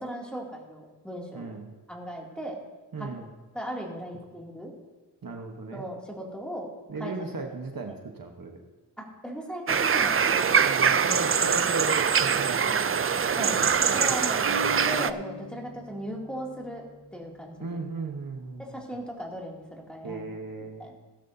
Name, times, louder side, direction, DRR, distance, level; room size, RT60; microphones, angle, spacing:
voice 1, 0.0-1.5 1.9-2.6 3.0-3.3 3.5-4.7 5.7-6.7 7.0-7.1 9.0-10.7 13.3-14.5 14.8-16.9 17.1-17.5 18.6-20.3 20.8-21.0, equal, ahead, -2 dB, 2.5 m, -37 dB
voice 2, 1.3-1.7 2.9-3.3 5.2-5.8 6.9-8.6 10.6-14.8 17.6-18.8 20.0-20.9, right 3 dB, 55° right, 3 dB, 1.1 m, -37 dB
sound 1, 9.7-15.1, right 6 dB, 35° right, 0.4 m, -23 dB
sound 2, 14.4-18.2, left 1 dB, 80° right, 3.7 m, -41 dB
16.5 x 12.5 x 2.7 m, 1.2 s
wide cardioid pair, 95°, 42 cm